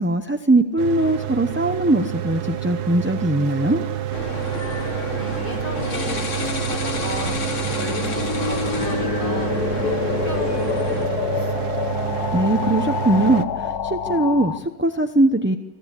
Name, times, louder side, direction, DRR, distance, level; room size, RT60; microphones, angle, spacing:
voice 1, 0.0-3.8 12.3-15.6, right 2 dB, 10° right, 6 dB, 0.6 m, -20 dB
Mechanical fan, 0.8-13.4, right 12 dB, 85° right, 1.6 m, -28 dB
sound 1, 4.1-11.1, left 4 dB, 50° left, 1.9 m, -30 dB
voice 2, 5.2-11.7, equal, 25° left, 2 dB, 4.5 m, -35 dB
sound 2, 5.5-14.6, left 7 dB, 75° left, 1.5 m, -28 dB
26.0 x 15.5 x 8.4 m, 1.1 s
omnidirectional pair, 1.6 m